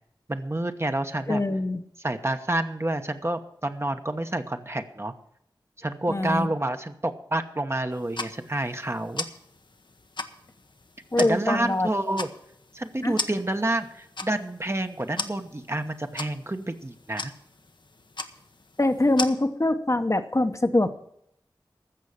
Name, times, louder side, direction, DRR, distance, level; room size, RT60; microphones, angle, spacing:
voice 1, 0.3-1.4 2.0-5.1 5.8-9.3 11.2-12.3 12.7-17.3, right 1 dB, 30° right, 7 dB, 1.1 m, -28 dB
voice 2, 1.3-1.8 6.1-6.5 11.1-11.9 13.0-13.1 18.8-20.9, left 2 dB, 35° left, 7 dB, 1.0 m, -23 dB
sound 1, 7.9-19.3, left 3 dB, 65° left, 0.9 m, -38 dB
14.5 x 6.3 x 8.5 m, 0.74 s
wide cardioid pair, 55°, 8 cm